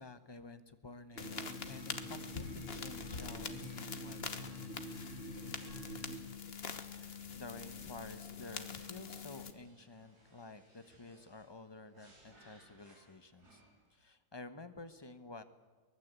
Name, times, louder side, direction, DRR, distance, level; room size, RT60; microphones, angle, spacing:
voice 1, 0.0-4.5 6.9-13.6 13.9-15.4, left 3 dB, 20° left, 10 dB, 1.0 m, -51 dB
sound 1, 1.1-6.2, right 1 dB, 50° right, 3.5 m, -47 dB
sound 2, 1.2-9.5, left 6 dB, 40° left, 1.5 m, -45 dB
sound 3, 9.4-14.0, right 1 dB, 80° right, 5.6 m, -65 dB
23.5 x 19.5 x 8.2 m, 1.3 s
omnidirectional pair, 1.7 m